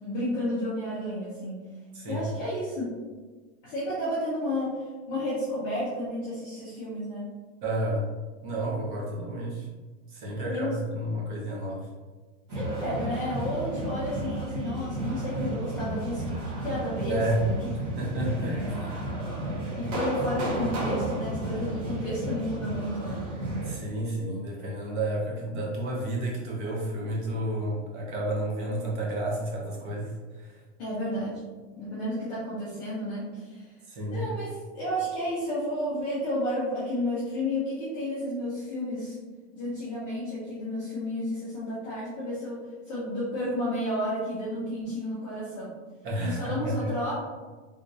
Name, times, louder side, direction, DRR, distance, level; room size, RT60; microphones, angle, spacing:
voice 1, 0.0-1.6 2.1-3.0 3.6-7.3 10.5-10.8 12.5-17.7 19.8-23.3 30.8-31.4 31.8-33.7 34.1-39.2 39.5-42.6 42.9-45.7 46.2-47.1, left 1 dB, 15° left, -11 dB, 0.3 m, -31 dB
voice 2, 1.9-2.3 7.6-8.1 8.4-9.7 10.1-11.9 17.1-17.4 18.0-18.8 23.6-30.5 33.9-34.3 46.0-46.7, right 1 dB, 40° right, -3 dB, 1.0 m, -31 dB
sound 1, 12.5-23.7, right 1 dB, 80° right, 1.4 m, -32 dB
3.5 x 2.9 x 2.6 m, 1.3 s
supercardioid pair, 165°, 37 cm